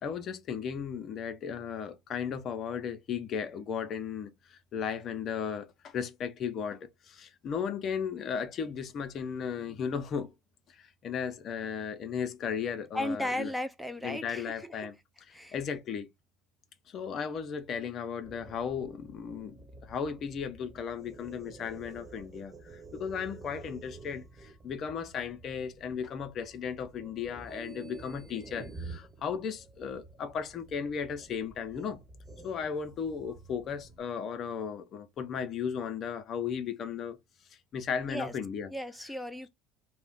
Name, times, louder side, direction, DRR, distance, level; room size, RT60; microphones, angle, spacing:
voice 1, 0.0-10.3 10.7-13.5 14.0-14.9 15.5-16.1 16.9-32.0 32.4-37.2 37.7-38.7, left 7 dB, 50° left, 0.5 m, -35 dB
voice 2, 12.9-14.8 15.3-15.6 38.1-38.3 38.7-39.5, left 1 dB, ahead, 0.5 m, -35 dB
sound 1, 18.2-34.0, right 3 dB, 25° right, 1.2 m, -50 dB
2.4 x 2.1 x 3.7 m
hypercardioid pair, 80°, 0 cm